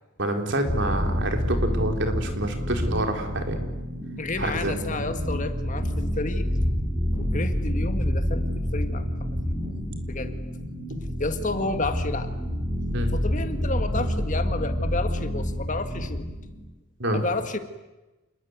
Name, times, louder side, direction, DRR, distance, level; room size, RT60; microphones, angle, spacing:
voice 1, 0.2-3.6 4.4-5.1 12.9-13.1 17.0-17.2, right 1 dB, 55° right, 4 dB, 4.0 m, -27 dB
sound 1, 0.6-16.6, equal, 20° right, 7.5 m, -28 dB
voice 2, 4.2-6.5 7.2-9.4 10.0-10.3 11.2-12.3 13.1-16.2 17.1-17.6, left 3 dB, 35° left, 8 dB, 1.9 m, -31 dB
28.0 x 21.0 x 9.5 m, 1.1 s
head